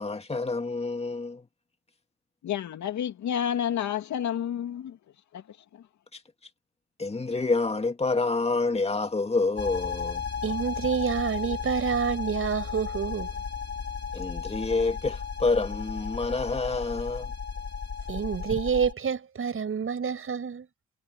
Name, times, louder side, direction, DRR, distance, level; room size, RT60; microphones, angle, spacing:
voice 1, 0.0-1.4 7.0-10.2 14.1-17.3, left 3 dB, 20° left, 2.3 m, -28 dB
voice 2, 2.4-5.0 5.3-5.8, left 9 dB, 70° left, 2.4 m, -30 dB
sound 1, 9.6-18.9, left 6 dB, 35° left, 5.8 m, -34 dB
voice 3, 10.4-13.3 18.1-20.7, right 6 dB, 45° right, 6.4 m, -28 dB
cardioid pair, 90°, 30 cm